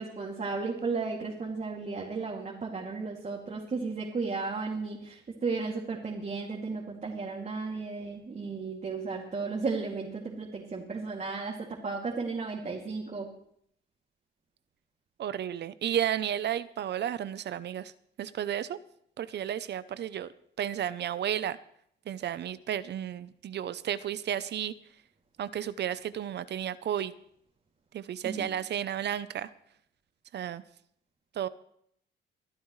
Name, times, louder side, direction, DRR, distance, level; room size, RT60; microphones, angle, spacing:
voice 1, 0.0-13.3 28.2-28.5, right 4 dB, 35° right, -2 dB, 2.5 m, -34 dB
voice 2, 15.2-17.9 18.2-18.8 19.2-20.3 20.6-21.6 22.1-24.7 25.4-27.1 27.9-29.5 30.3-30.6 31.3-31.5, right 10 dB, 60° right, 15 dB, 0.6 m, -32 dB
22.5 x 12.0 x 3.2 m, 0.70 s
cardioid pair, 90°, 20 cm